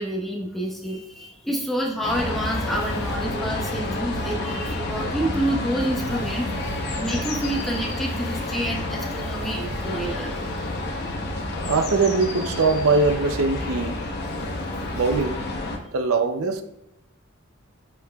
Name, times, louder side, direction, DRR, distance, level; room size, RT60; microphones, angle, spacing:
voice 1, 0.0-10.4, right 1 dB, ahead, -3 dB, 1.1 m, -28 dB
sound 1, 2.0-15.8, left 2 dB, 50° left, 1.0 m, -29 dB
voice 2, 11.7-14.0 14.9-15.4 15.9-16.6, right 4 dB, 80° right, 7 dB, 0.6 m, -21 dB
10.5 x 4.7 x 2.3 m, 0.85 s
head